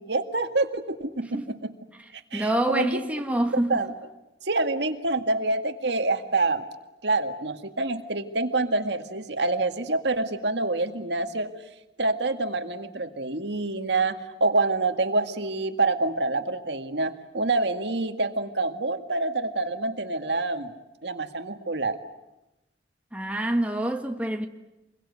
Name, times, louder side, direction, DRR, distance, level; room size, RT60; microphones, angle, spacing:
voice 1, 0.0-1.7 2.3-3.0 3.7-3.9 4.4-6.6 7.0-11.5 12.0-20.7 21.0-22.0, right 2 dB, 70° right, 2.0 m, -26 dB
voice 2, 2.3-3.8 23.1-24.5, right 1 dB, 10° right, 1.5 m, -26 dB
27.5 x 22.5 x 9.6 m
head